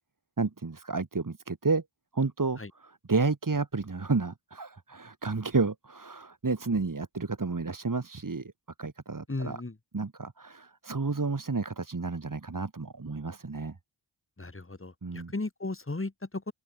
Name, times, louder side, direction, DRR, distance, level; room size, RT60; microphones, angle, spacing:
voice 1, 0.4-1.8 2.1-8.5 8.8-9.6 9.9-13.8 15.0-15.3, right 4 dB, 45° right, 3.9 m, -31 dB
voice 2, 9.3-9.8 14.4-16.5, left 2 dB, 25° left, 4.1 m, -36 dB
open air
cardioid pair, 50°, 46 cm